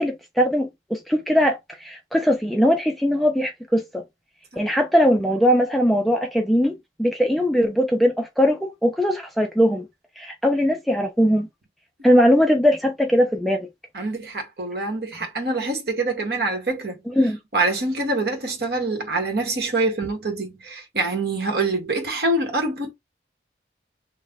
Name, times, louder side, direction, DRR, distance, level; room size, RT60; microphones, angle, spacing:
voice 1, 0.0-4.0 4.6-6.7 7.0-9.9 10.2-11.5 12.0-13.7 15.2-15.3 17.2-17.4, equal, ahead, 0.3 m, -20 dB
voice 2, 13.9-17.0 17.5-22.9, right 2 dB, 60° right, 1.1 m, -25 dB
3.2 x 2.1 x 3.6 m
head